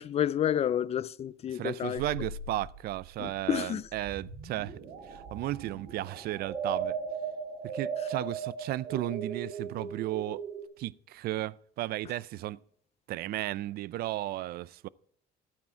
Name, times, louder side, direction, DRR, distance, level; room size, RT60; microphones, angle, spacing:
voice 1, 0.0-2.0 3.2-3.8, left 10 dB, 40° left, 0.4 m, -30 dB
voice 2, 1.5-4.8 5.0-7.0 7.6-10.4 10.8-12.6 13.1-14.9, right 15 dB, 65° right, 0.4 m, -34 dB
sound 1, 2.0-10.6, right 5 dB, 90° right, 1.9 m, -38 dB
12.5 x 9.2 x 4.4 m
cardioid pair, 110°, 17 cm